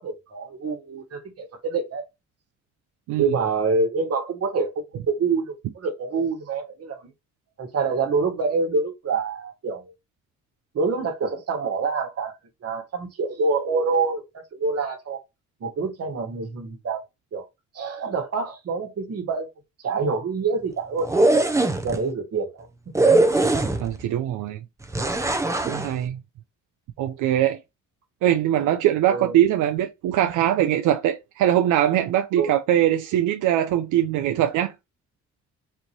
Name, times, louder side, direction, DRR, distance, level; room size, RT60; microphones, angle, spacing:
voice 1, 0.0-2.0 3.2-4.7 5.1-7.1 7.6-9.9 10.7-12.3 12.6-14.2 14.6-15.2 15.6-17.0 17.3-17.4 17.7-19.5 19.8-21.1 21.8-22.7 23.4-23.5 29.1-29.4 32.4-32.5, right 4 dB, 55° right, 1.4 m, -26 dB
sound 1, 21.0-22.0 22.9-24.0 24.9-25.9, right 2 dB, 10° right, 0.6 m, -20 dB
voice 2, 23.8-24.6 25.6-26.2 27.0-27.6 28.2-34.7, right 11 dB, 85° right, 0.5 m, -22 dB
4.3 x 2.7 x 3.0 m
cardioid pair, 90°, 30 cm